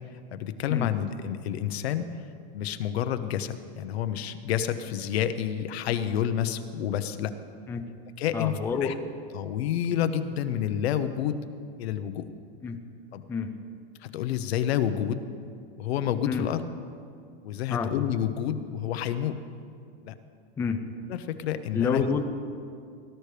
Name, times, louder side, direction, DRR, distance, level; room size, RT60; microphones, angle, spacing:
voice 1, 0.3-2.1 2.5-7.3 8.2-8.9 9.3-11.4 11.8-12.2 13.1-13.3 14.0-15.2 15.8-16.6 17.4-19.4 20.0-20.1 21.1-22.0, left 10 dB, 90° left, 10 dB, 0.9 m, -29 dB
voice 2, 8.3-8.9 12.6-12.8 13.3-13.6 16.3-16.5 17.7-17.9 20.6-20.8 21.7-22.2, left 5 dB, 10° left, 5 dB, 0.4 m, -28 dB
18.5 x 12.5 x 3.4 m, 2.4 s
supercardioid pair, 155°, 31 cm